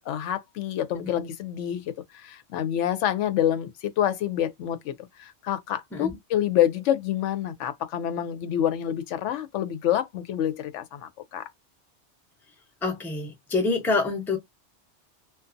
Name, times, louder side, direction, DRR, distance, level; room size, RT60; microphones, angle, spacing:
voice 1, 0.1-11.5, left 11 dB, 90° left, 0.9 m, -27 dB
voice 2, 12.8-14.4, left 3 dB, ahead, 0.5 m, -26 dB
2.5 x 2.3 x 2.5 m
omnidirectional pair, 1.2 m